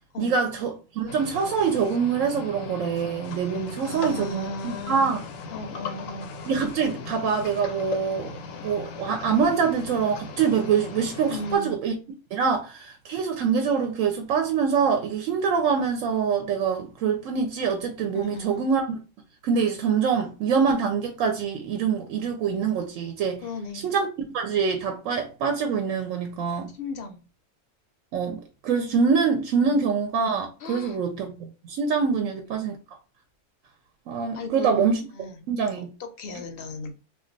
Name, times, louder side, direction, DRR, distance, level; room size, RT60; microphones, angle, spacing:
voice 1, 0.2-5.2 6.5-11.9 12.3-19.0 19.4-23.4 23.8-24.1 24.3-26.7 28.1-32.7 34.1-35.0 35.5-35.9, right 6 dB, 85° right, 1.0 m, -25 dB
sound 1, 1.1-11.6, left 4 dB, 85° left, 1.0 m, -38 dB
voice 2, 3.8-5.1 5.5-6.3 11.3-11.8 18.1-18.6 23.4-23.9 26.8-27.2 29.6-29.8 30.6-31.0 34.3-34.9 35.1-35.3 36.0-36.9, left 2 dB, 60° left, 0.6 m, -36 dB
2.3 x 2.3 x 3.8 m
omnidirectional pair, 1.3 m